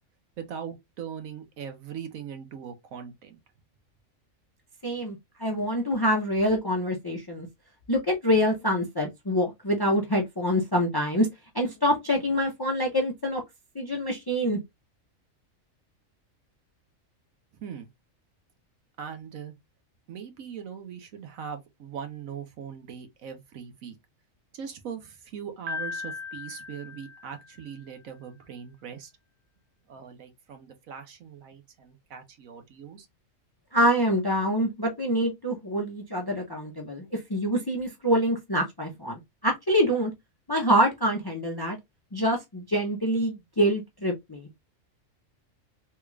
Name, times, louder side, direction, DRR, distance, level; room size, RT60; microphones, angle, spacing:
voice 1, 0.4-3.4 17.6-17.9 19.0-19.5 20.1-24.0 24.5-29.1 29.9-33.1, right 7 dB, 90° right, 1.2 m, -40 dB
voice 2, 4.8-7.5 7.9-11.3 11.5-13.4 13.7-14.6 33.7-40.1 40.5-41.8 42.1-44.5, equal, 30° left, 0.4 m, -26 dB
Piano, 25.7-27.8, left 4 dB, 50° right, 0.7 m, -37 dB
3.4 x 2.4 x 3.1 m
omnidirectional pair, 1.4 m